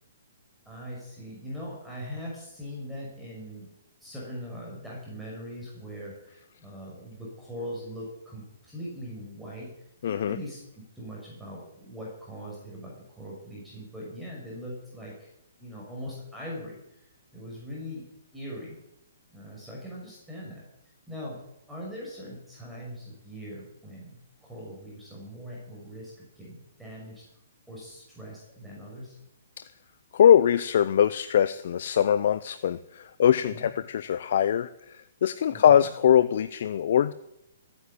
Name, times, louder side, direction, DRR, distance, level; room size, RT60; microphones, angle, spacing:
voice 1, 0.6-3.7 4.0-9.7 10.0-10.6 10.9-15.3 15.6-17.0 17.3-18.1 18.3-18.8 19.3-20.6 21.1-21.4 21.7-27.2 27.7-29.1 33.5-33.7 35.5-35.9, equal, 5° right, -5 dB, 6.3 m, -41 dB
voice 2, 10.0-10.4 30.1-37.1, left 9 dB, 60° left, 14 dB, 0.7 m, -22 dB
15.0 x 9.8 x 8.5 m, 0.83 s
hypercardioid pair, 135°, 0 cm